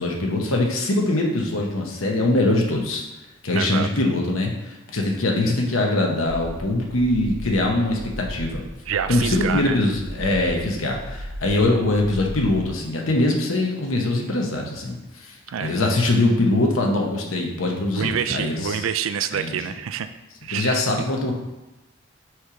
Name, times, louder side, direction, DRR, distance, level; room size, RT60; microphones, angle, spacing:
voice 1, 0.0-3.0 3.4-8.6 9.1-18.8 19.3-19.6 20.5-21.3, left 2 dB, 85° left, 0 dB, 1.0 m, -22 dB
voice 2, 3.5-3.9 8.9-9.8 15.5-15.8 17.9-20.1 20.4-20.8, right 8 dB, 80° right, 10 dB, 0.4 m, -27 dB
sound 1, 6.3-12.7, equal, 50° right, 0.8 m, -36 dB
6.2 x 3.2 x 4.9 m, 1.0 s
head